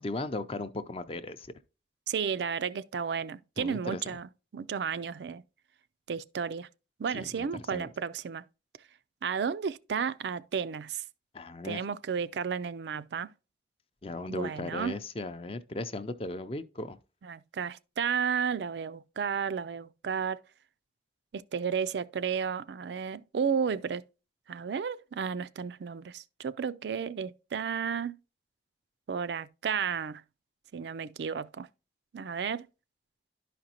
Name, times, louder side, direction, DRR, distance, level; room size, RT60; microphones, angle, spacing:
voice 1, 0.0-1.5 3.6-4.0 7.1-7.9 11.3-11.8 14.0-17.0, left 2 dB, 30° left, 0.5 m, -37 dB
voice 2, 2.1-5.4 6.1-6.7 7.0-8.4 9.2-11.0 11.6-13.3 14.3-15.0 17.2-20.4 21.3-24.0 24.5-28.2 29.1-30.2 30.7-31.7 32.1-32.7, right 6 dB, 75° right, 0.4 m, -33 dB
11.5 x 5.1 x 2.9 m
head